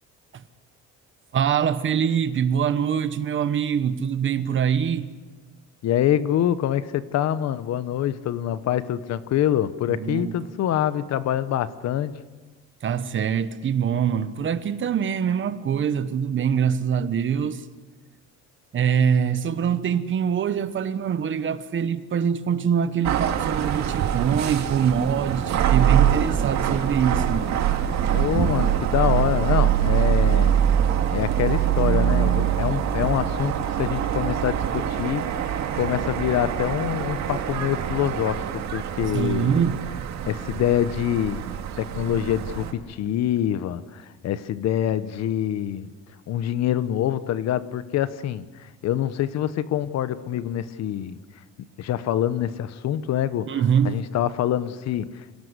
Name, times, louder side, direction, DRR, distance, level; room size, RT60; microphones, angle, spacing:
voice 1, 1.3-5.1 9.9-10.3 12.8-17.6 18.7-27.6 39.1-39.8 40.1-40.2 53.5-54.0, right 7 dB, 40° right, 1.2 m, -24 dB
voice 2, 5.8-12.1 28.1-30.6 31.1-39.6 40.3-41.4 41.8-45.9 46.3-51.2 51.8-55.3, left 11 dB, 60° left, 1.1 m, -25 dB
sound 1, 23.0-42.7, right 10 dB, 60° right, 2.2 m, -24 dB
26.5 x 17.5 x 8.2 m
cardioid pair, 140°, 30 cm